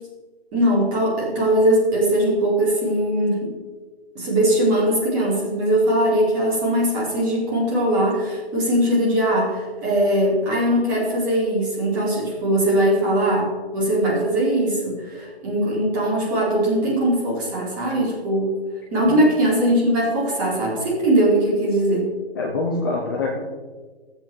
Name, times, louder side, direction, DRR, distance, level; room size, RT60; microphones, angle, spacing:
voice 1, 0.5-3.5 4.1-18.6 18.9-22.1, right 1 dB, 20° right, -5 dB, 2.3 m, -20 dB
voice 2, 22.3-23.4, left 3 dB, 20° left, -2 dB, 0.8 m, -25 dB
14.5 x 7.9 x 3.1 m, 1.4 s
figure-of-eight pair, 145°, 31 cm